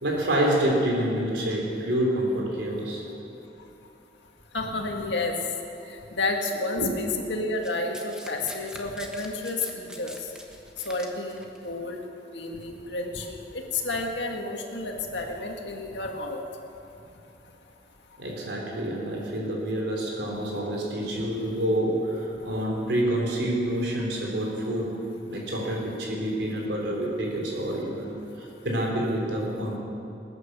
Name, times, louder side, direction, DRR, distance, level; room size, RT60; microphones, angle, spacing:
voice 1, 0.0-3.0 6.8-6.9 18.2-25.0 25.3-29.8, right 1 dB, 80° right, -2 dB, 3.9 m, -27 dB
voice 2, 4.5-5.3 5.9-10.1 10.9-12.0 12.3-16.4, left 2 dB, 90° left, 2 dB, 1.9 m, -31 dB
Domestic sounds home sounds, 7.6-11.6 12.5-12.6, equal, 5° right, 1.2 m, -44 dB
20.5 x 9.7 x 6.8 m, 2.7 s
head